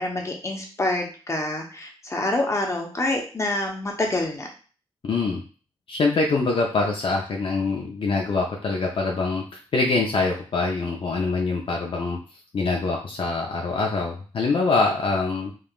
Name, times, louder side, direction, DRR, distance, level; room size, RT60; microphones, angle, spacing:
voice 1, 0.0-4.5, left 2 dB, 30° left, 1 dB, 0.9 m, -27 dB
voice 2, 5.0-5.4 5.9-12.2 12.5-15.5, left 3 dB, 60° left, -1 dB, 0.6 m, -24 dB
3.6 x 2.4 x 2.3 m, 0.38 s
cardioid pair, 55°, 10 cm